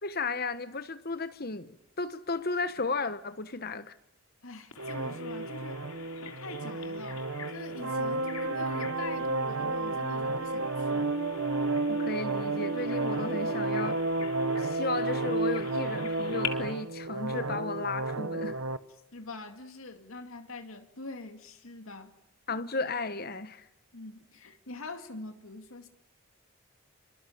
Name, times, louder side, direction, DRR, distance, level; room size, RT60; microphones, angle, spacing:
voice 1, 0.0-3.9 11.9-14.0 14.6-18.6 22.5-23.6, left 3 dB, 45° left, 1.2 m, -34 dB
voice 2, 4.4-5.8 6.4-11.1 19.1-22.1 23.9-25.9, left 2 dB, 75° left, 2.4 m, -44 dB
Bird vocalization bird call bird song, 4.7-16.5, left 7 dB, 90° left, 3.6 m, -45 dB
sound 1, 4.8-18.8, right 2 dB, 65° right, 1.1 m, -31 dB
27.0 x 25.5 x 8.7 m
head